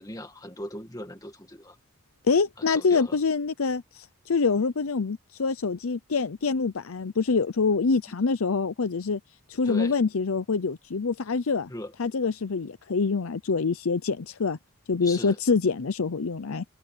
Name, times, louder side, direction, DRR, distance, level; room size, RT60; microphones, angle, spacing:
voice 1, 0.0-1.8 2.6-3.2 9.7-10.0 11.7-11.9 15.0-15.4, left 1 dB, 15° left, 2.1 m, -38 dB
voice 2, 2.3-9.2 9.5-11.7 12.0-14.6 14.9-16.6, left 4 dB, 85° left, 0.7 m, -25 dB
head